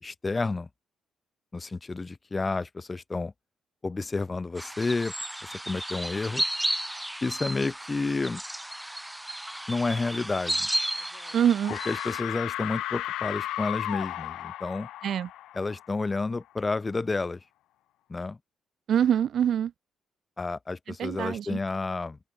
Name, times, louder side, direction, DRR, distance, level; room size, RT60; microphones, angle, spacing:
voice 1, 0.0-0.7 1.5-3.3 3.8-5.1 5.4-6.4 7.2-8.4 9.7-10.7 11.7-14.9 15.5-17.4 18.1-18.4 20.4-22.2, left 3 dB, 25° left, 4.0 m, -30 dB
sound 1, 4.6-12.2, right 1 dB, 5° right, 1.1 m, -33 dB
sound 2, 11.0-11.3 11.6-16.2, left 14 dB, 85° left, 2.7 m, -35 dB
voice 2, 11.3-11.7 15.0-15.3 18.9-19.7 21.0-21.6, right 9 dB, 65° right, 0.3 m, -24 dB
open air
cardioid pair, 90°, 0 cm